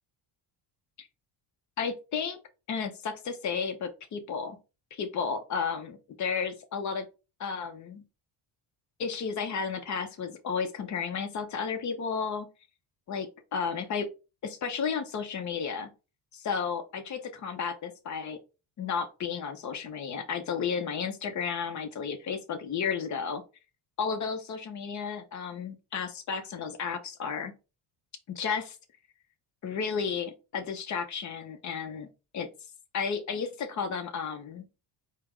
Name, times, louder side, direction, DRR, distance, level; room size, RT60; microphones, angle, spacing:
voice 1, 1.8-2.4 2.7-4.6 4.9-7.0 7.4-8.0 9.0-12.5 13.1-14.1 14.4-15.9 16.3-18.4 18.8-23.4 24.0-27.5 28.3-28.8 29.6-32.1 32.3-32.5 32.9-34.7, left 6 dB, 40° left, 0.8 m, -33 dB
4.6 x 2.2 x 3.6 m
cardioid pair, 115°, 44 cm